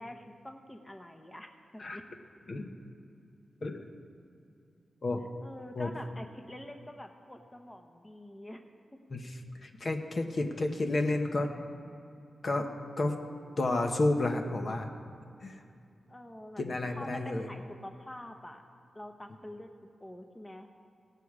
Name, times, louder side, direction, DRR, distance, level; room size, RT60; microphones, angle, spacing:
voice 1, 0.0-2.0 5.4-8.6 8.9-9.0 16.1-18.6 18.9-19.7 20.0-20.7, left 1 dB, 15° left, 5 dB, 0.9 m, -46 dB
voice 2, 3.6-3.9 5.0-5.3 5.7-5.9 9.1-11.6 12.4-12.7 13.0-13.1 13.6-14.9 15.4-15.6 16.6-17.5, left 2 dB, 55° left, 4 dB, 1.0 m, -31 dB
17.0 x 6.9 x 4.8 m, 2.5 s
cardioid pair, 50°, 0 cm